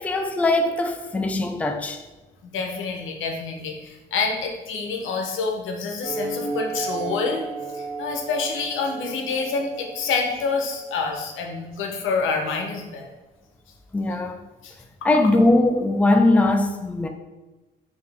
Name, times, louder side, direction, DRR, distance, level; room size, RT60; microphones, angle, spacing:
voice 1, 0.0-2.0 13.9-14.4 15.0-17.1, left 2 dB, 5° left, 0.4 m, -20 dB
voice 2, 2.4-7.4 7.7-13.1 14.6-14.7, left 4 dB, 80° left, 0.8 m, -27 dB
sound 1, 6.0-11.0, right 3 dB, 30° right, 0.9 m, -33 dB
4.7 x 2.8 x 3.4 m
cardioid pair, 90°, 20 cm